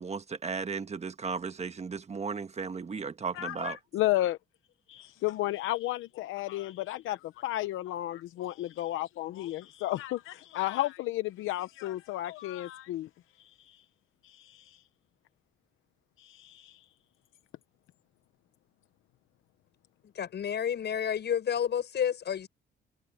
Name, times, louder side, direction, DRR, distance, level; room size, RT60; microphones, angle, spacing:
voice 1, 0.0-3.8, right 5 dB, 35° right, 1.4 m, -35 dB
voice 2, 3.3-4.4 4.9-13.1 13.4-13.8 14.2-14.8 16.2-16.8, left 15 dB, 90° left, 0.8 m, -33 dB
voice 3, 20.0-22.5, left 8 dB, 60° left, 7.2 m, -30 dB
cardioid pair, 90°, 20 cm